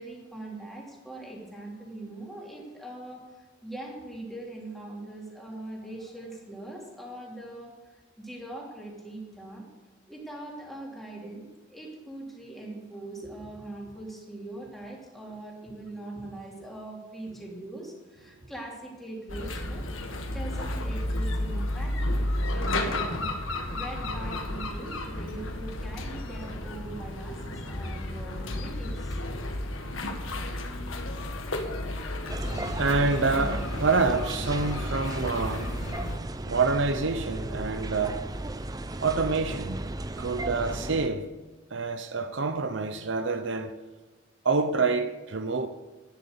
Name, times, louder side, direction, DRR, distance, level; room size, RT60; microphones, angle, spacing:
voice 1, 0.0-7.7 8.2-9.7 10.1-19.8 20.2-29.4, right 1 dB, ahead, 3.1 m, -41 dB
sound 1, 19.3-36.2, left 1 dB, 85° left, 1.7 m, -32 dB
sound 2, 32.3-41.1, right 1 dB, 20° right, 0.5 m, -35 dB
voice 2, 32.8-35.9 36.5-38.3 39.0-39.8 40.2-41.3 41.7-43.8 44.4-45.7, right 4 dB, 65° right, 0.7 m, -27 dB
12.0 x 10.5 x 6.8 m
head